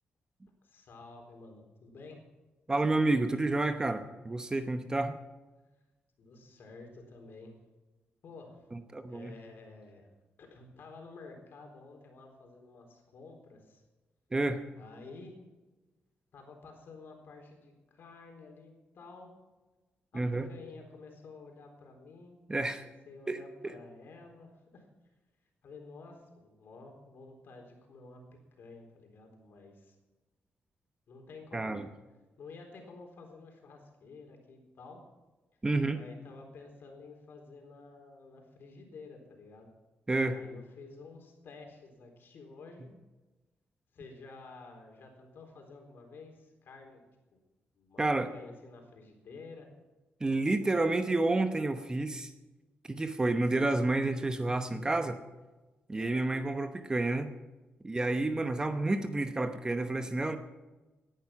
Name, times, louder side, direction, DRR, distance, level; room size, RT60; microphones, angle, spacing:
voice 1, 0.6-2.2 6.2-7.5 8.2-8.6 9.1-10.1 10.4-13.8 14.7-15.4 16.3-19.3 20.1-22.4 22.7-24.9 25.6-28.2 28.6-30.0 31.1-31.8 32.4-35.0 35.9-39.7 40.3-42.9 43.9-47.0 47.3-47.4 47.7-48.0 48.3-49.7 55.9-56.3, left 3 dB, 60° left, 3 dB, 4.0 m, -51 dB
voice 2, 2.7-5.2 8.7-9.3 14.3-14.6 20.1-20.5 22.5-22.9 23.3-23.4 31.5-31.9 35.6-36.0 40.1-40.4 48.0-48.3 50.2-52.3 52.9-55.2 55.9-57.3 57.8-60.4, right 2 dB, 20° right, 8 dB, 0.9 m, -30 dB
18.0 x 10.5 x 5.9 m, 1.2 s
wide cardioid pair, 140°, 4 cm